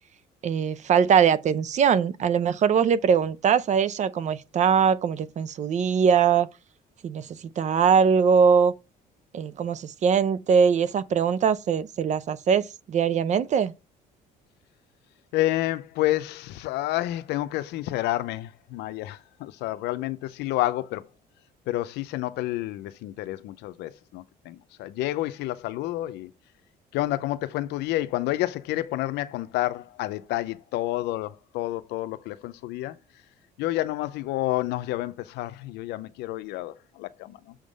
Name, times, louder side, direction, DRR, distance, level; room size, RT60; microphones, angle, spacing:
voice 1, 0.4-6.5 7.0-8.7 9.3-13.7, right 7 dB, 45° right, 0.5 m, -22 dB
voice 2, 15.3-21.1 21.7-26.3 26.9-33.0 33.6-37.5, left 16 dB, 85° left, 0.6 m, -29 dB
7.0 x 3.8 x 5.1 m
cardioid pair, 110°, 17 cm